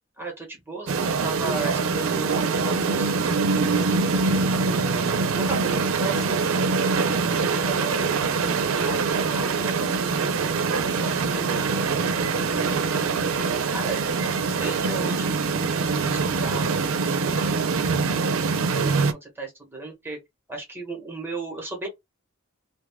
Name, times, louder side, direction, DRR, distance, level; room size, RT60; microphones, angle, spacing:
voice 1, 0.2-3.4 4.0-5.0 5.3-8.1 8.8-10.4 10.7-11.6 12.4-15.5 15.9-18.0 18.7-20.2 20.5-21.9, right 2 dB, 10° right, 1.0 m, -36 dB
sound 1, 0.9-19.1, right 4 dB, 85° right, 0.5 m, -24 dB
2.7 x 2.3 x 3.4 m
head